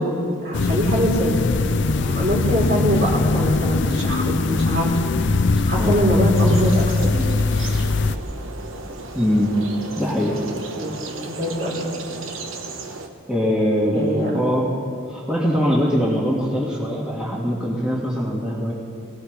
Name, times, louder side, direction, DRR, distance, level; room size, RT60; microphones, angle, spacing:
voice 1, 0.0-1.4 2.0-5.1 5.7-7.1 10.8-11.0 11.2-11.8 13.9-14.4, equal, 50° right, -3 dB, 4.0 m, -23 dB
sound 1, 0.5-8.2, left 3 dB, 55° left, 0.5 m, -21 dB
voice 2, 5.6-6.0 7.6-7.8 9.2-9.5 10.0-10.4 13.3-14.1 14.3-14.7 15.1-18.7, equal, 5° right, -6 dB, 2.0 m, -22 dB
sound 2, 6.3-13.1, right 3 dB, 70° right, 1.2 m, -35 dB
23.0 x 18.5 x 3.4 m, 2.5 s
head